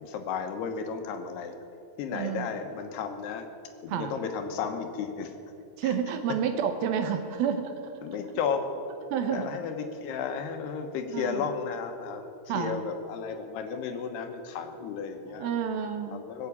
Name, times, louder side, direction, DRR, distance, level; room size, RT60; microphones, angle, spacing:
voice 1, 0.0-1.5 2.0-3.5 3.8-5.3 5.8-6.0 8.0-8.7 9.3-15.5 16.1-16.5, left 6 dB, 80° left, 6 dB, 3.2 m, -33 dB
voice 2, 2.1-2.5 3.9-4.1 5.8-7.7 9.1-9.5 11.1-11.5 12.5-12.8 15.3-16.2, right 8 dB, 75° right, 7 dB, 2.6 m, -29 dB
20.5 x 8.3 x 8.4 m, 2.6 s
omnidirectional pair, 4.7 m